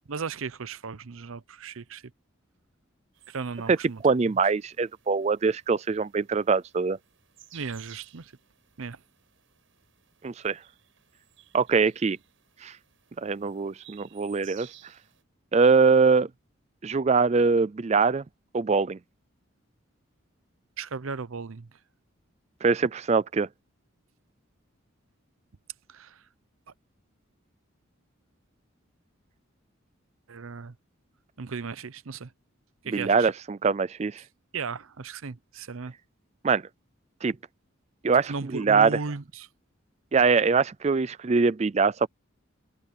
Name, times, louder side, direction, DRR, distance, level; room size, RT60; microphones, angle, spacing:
voice 1, 0.1-2.0 3.3-4.0 4.3-4.4 7.5-8.3 8.8-9.0 20.8-21.7 25.9-26.2 30.3-30.7 31.4-32.3 32.8-33.3 34.5-35.9 38.3-39.5, right 5 dB, 85° right, 0.7 m, -36 dB
sound 1, 3.1-15.2, right 12 dB, 70° right, 7.2 m, -56 dB
voice 2, 4.0-7.0 10.2-10.6 11.5-12.2 12.6-12.8 13.2-14.7 15.5-16.3 16.8-18.2 18.5-19.0 22.6-23.5 32.9-34.2 36.4-36.6 37.2-37.4 38.0-39.0 40.1-42.1, right 4 dB, 30° right, 0.4 m, -23 dB
head